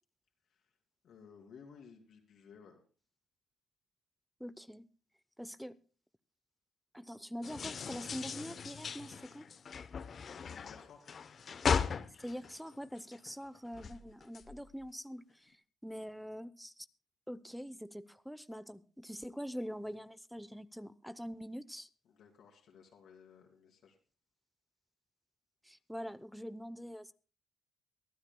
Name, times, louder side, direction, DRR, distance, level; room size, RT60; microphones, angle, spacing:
voice 1, 1.0-2.8 10.3-11.0 22.1-24.0, left 6 dB, 70° left, 0 dB, 2.8 m, -57 dB
voice 2, 4.4-4.9 5.4-5.8 6.9-9.5 12.2-15.6 15.8-16.9 17.3-21.9 25.6-27.1, equal, ahead, 15 dB, 0.7 m, -44 dB
sound 1, 7.4-13.3 13.7-14.9, left 6 dB, 50° left, 0.8 m, -38 dB
23.5 x 12.5 x 2.3 m, 0.37 s
cardioid pair, 90°, 0 cm